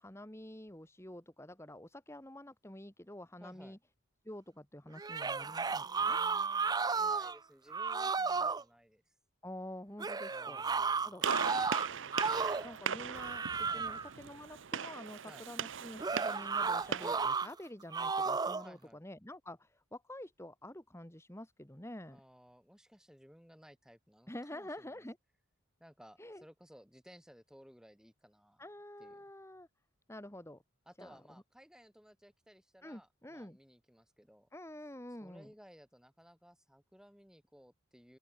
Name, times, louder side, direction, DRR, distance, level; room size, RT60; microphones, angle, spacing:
voice 1, 0.0-3.8 4.2-6.2 9.4-10.7 11.0-11.3 12.6-22.2 24.3-25.2 26.2-26.4 28.6-29.7 30.1-30.6 31.0-31.2 32.8-33.6 34.5-35.5, left 1 dB, 15° left, 1.8 m, -48 dB
voice 2, 3.4-3.8 5.5-9.1 10.3-11.2 11.5-12.5 13.7-14.0 15.3-15.5 18.6-19.0 22.1-25.0 25.8-28.7 29.0-29.2 30.9-34.5 35.2-38.2, equal, 5° right, 3.9 m, -59 dB
sound 1, 5.0-7.4 7.7-8.6 10.0-12.7 13.1-14.1 16.0-17.5 17.9-18.7, right 5 dB, 20° right, 0.4 m, -33 dB
Gunshot gunfire, 11.2-17.2, right 7 dB, 65° right, 0.7 m, -39 dB
open air
head